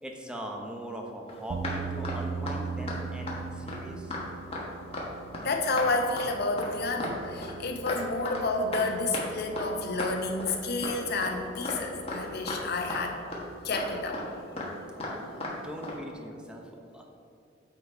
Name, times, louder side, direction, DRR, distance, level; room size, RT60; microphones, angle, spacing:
voice 1, 0.0-4.1 15.1-17.0, equal, 5° right, 1 dB, 0.7 m, -40 dB
sound 1, 1.3-1.4 1.6-1.8 2.0-2.2 2.5-2.6 2.9-3.0 3.3-3.4 3.7-3.8 4.1-4.2 4.5-4.6 4.9-5.1 5.3-5.5 5.8-5.9 6.2-6.3 6.6-6.7 7.0-7.2 7.4-8.0 8.3-8.4 8.7-8.8 9.1-9.3 9.6-9.7 10.0-10.1 10.4-10.5 10.8-11.0 11.2-11.3 11.7-11.8 12.1-12.2 12.5-12.6 12.9-13.0 13.3-13.4 13.7-13.9 14.1-14.3 14.6-14.7 15.0-15.1 15.4-15.5 15.8-16.0, left 2 dB, 30° left, 1.3 m, -35 dB
sound 2, 1.5-14.0, right 5 dB, 40° right, 0.3 m, -41 dB
voice 2, 5.4-13.2 13.6-14.3, left 3 dB, 60° left, 3 dB, 0.8 m, -30 dB
8.3 x 4.0 x 4.7 m, 2.6 s
head